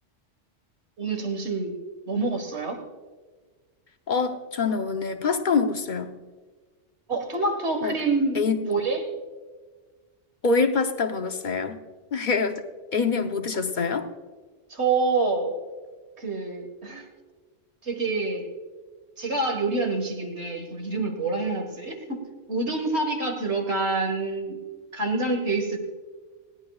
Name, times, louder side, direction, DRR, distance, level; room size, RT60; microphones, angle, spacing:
voice 1, 1.0-1.7 2.1-2.8 7.1-9.0 14.7-15.5 16.2-17.1 17.8-18.4 19.2-24.6 24.9-25.8, right 3 dB, 65° right, 4 dB, 1.9 m, -27 dB
voice 2, 4.1-6.1 7.8-8.0 8.3-8.6 10.4-11.8 12.1-12.5 12.9-14.1, left 4 dB, 45° left, 6 dB, 0.9 m, -25 dB
20.5 x 16.5 x 2.4 m, 1.4 s
omnidirectional pair, 1.2 m